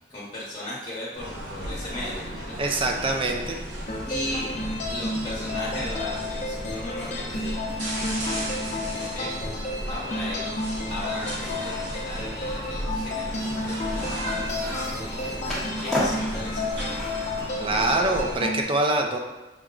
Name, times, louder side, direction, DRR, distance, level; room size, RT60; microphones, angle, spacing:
voice 1, 0.1-2.6 2.9-3.5 4.0-4.5 4.9-9.3 9.9-17.1, left 1 dB, 30° left, -7 dB, 0.9 m, -37 dB
sound 1, 1.1-18.4, right 1 dB, 80° right, 1.1 m, -35 dB
voice 2, 2.6-3.6 17.6-19.2, right 2 dB, 30° right, 3 dB, 0.5 m, -24 dB
sound 2, 3.9-18.7, left 2 dB, 45° left, 0.6 m, -32 dB
Skateboard, 13.4-18.6, equal, ahead, 0.9 m, -35 dB
5.8 x 2.1 x 3.7 m, 1.1 s
head